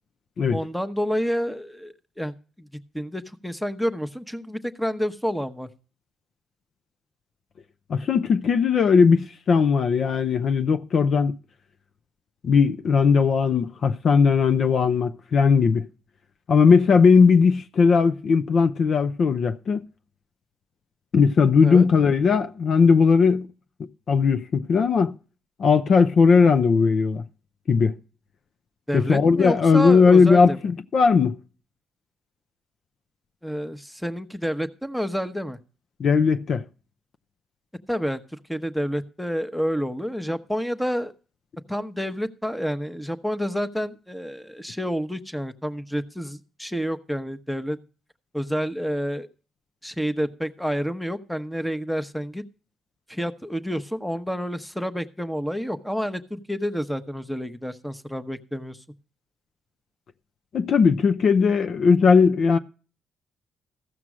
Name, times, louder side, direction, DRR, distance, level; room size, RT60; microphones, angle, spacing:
voice 1, 0.5-2.7 2.9-5.7 21.6-21.9 28.9-30.6 33.4-35.6 37.9-41.1 41.7-47.8 48.3-49.3 49.8-52.4 53.1-58.8, equal, 5° left, 0.9 m, -29 dB
voice 2, 7.9-11.3 12.4-15.9 16.5-19.8 21.1-23.5 23.8-25.2 25.6-27.2 27.7-27.9 28.9-31.4 36.0-36.6 60.5-62.6, left 5 dB, 55° left, 0.6 m, -18 dB
15.0 x 6.0 x 6.1 m
cardioid pair, 90°, 0 cm